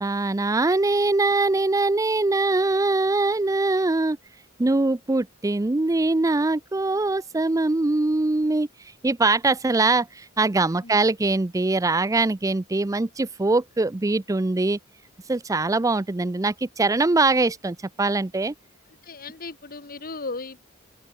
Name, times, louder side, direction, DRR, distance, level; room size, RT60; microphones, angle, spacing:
voice 1, 0.0-4.2 4.6-8.7 9.0-14.8 15.3-18.5, right 2 dB, 15° right, 0.5 m, -22 dB
voice 2, 19.0-20.6, left 3 dB, 45° left, 1.9 m, -36 dB
open air
head